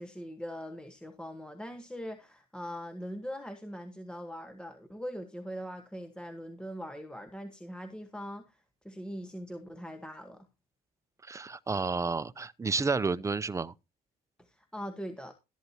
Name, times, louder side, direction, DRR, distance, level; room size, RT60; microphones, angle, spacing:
voice 1, 0.0-10.5 14.4-15.3, equal, 5° left, 1.3 m, -41 dB
voice 2, 11.2-13.7, right 4 dB, 20° right, 0.6 m, -31 dB
13.0 x 11.0 x 2.8 m
cardioid pair, 110°, 17 cm